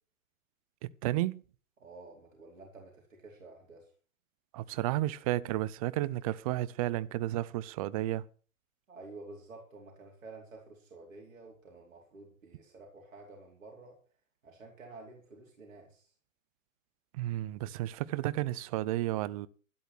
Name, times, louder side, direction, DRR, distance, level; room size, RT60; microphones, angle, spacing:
voice 1, 0.8-1.4 4.5-8.3 17.1-19.5, right 15 dB, 25° right, 0.6 m, -32 dB
voice 2, 1.8-3.9 8.9-14.0 14.4-16.1, right 3 dB, 70° right, 4.3 m, -51 dB
12.5 x 10.5 x 6.1 m
figure-of-eight pair, 120°, 41 cm